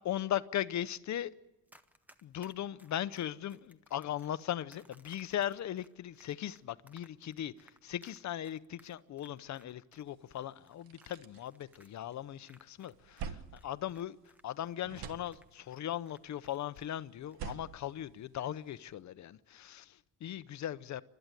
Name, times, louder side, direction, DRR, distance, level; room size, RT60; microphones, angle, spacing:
voice 1, 0.0-1.3 2.2-14.2 14.4-21.0, left 11 dB, 50° left, 0.8 m, -38 dB
Run, 1.7-13.3 13.6-17.0 17.3-17.6, right 1 dB, 5° right, 0.8 m, -63 dB
sound 1, 10.2-10.3 10.6-12.3 12.7-14.5 14.8-15.9 17.1-18.8, right 7 dB, 90° right, 1.4 m, -47 dB
29.5 x 13.0 x 9.1 m
cardioid pair, 170°, 36 cm